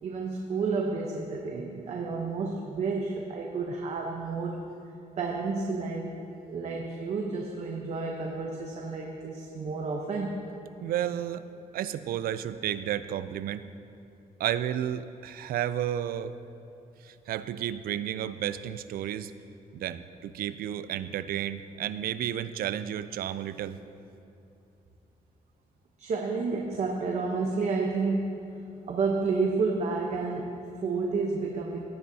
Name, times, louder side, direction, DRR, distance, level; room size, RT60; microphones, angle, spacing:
voice 1, 0.0-4.6 5.2-6.2 6.5-10.4 26.0-28.5 28.9-31.8, right 4 dB, 45° right, 0 dB, 0.8 m, -30 dB
voice 2, 10.8-11.5 11.7-13.7 14.4-16.3 17.0-19.3 19.7-23.8, right 11 dB, 85° right, 13 dB, 0.4 m, -32 dB
16.5 x 10.0 x 2.7 m, 2.8 s
wide cardioid pair, 175°, 15 cm